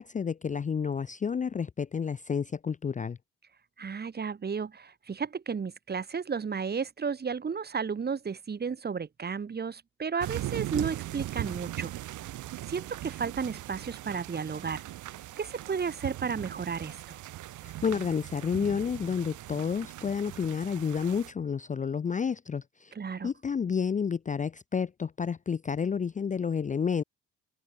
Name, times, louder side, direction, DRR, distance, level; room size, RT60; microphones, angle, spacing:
voice 1, 0.0-3.2 17.6-22.9 23.2-27.0, left 6 dB, 25° left, 0.5 m, -30 dB
voice 2, 3.8-11.9 12.7-14.8 15.4-17.2 22.9-23.3, right 6 dB, 35° right, 1.5 m, -33 dB
sound 1, 10.2-21.3, right 14 dB, 75° right, 1.3 m, -39 dB
cardioid pair, 90°, 30 cm